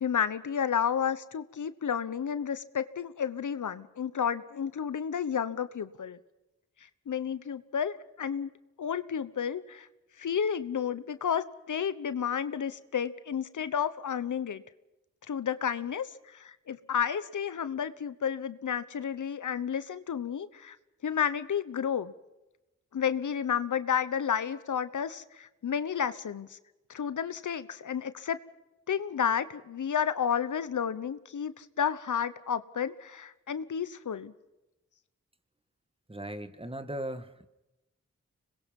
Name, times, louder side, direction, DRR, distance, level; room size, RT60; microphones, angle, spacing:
voice 1, 0.0-6.2 7.1-8.5 8.8-9.9 10.2-14.6 15.3-20.8 21.0-22.1 22.9-26.6 26.9-28.4 28.9-34.3, left 8 dB, 80° left, 14 dB, 1.1 m, -31 dB
voice 2, 36.1-37.5, right 1 dB, 20° right, 10 dB, 2.0 m, -38 dB
26.0 x 21.5 x 5.5 m, 0.97 s
cardioid pair, 45°, 30 cm